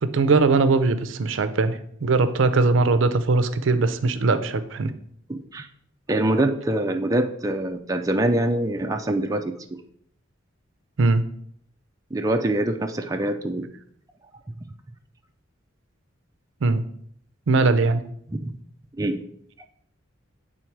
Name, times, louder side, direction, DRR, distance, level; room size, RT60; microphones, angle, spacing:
voice 1, 0.0-4.9 11.0-11.2 16.6-16.9 17.5-18.0, right 3 dB, 70° right, 11 dB, 0.5 m, -20 dB
voice 2, 5.3-5.7 6.1-9.8 12.1-13.7 18.3-18.5 19.0-19.2, right 1 dB, 15° right, 4 dB, 0.4 m, -24 dB
7.8 x 3.8 x 4.5 m, 0.67 s
head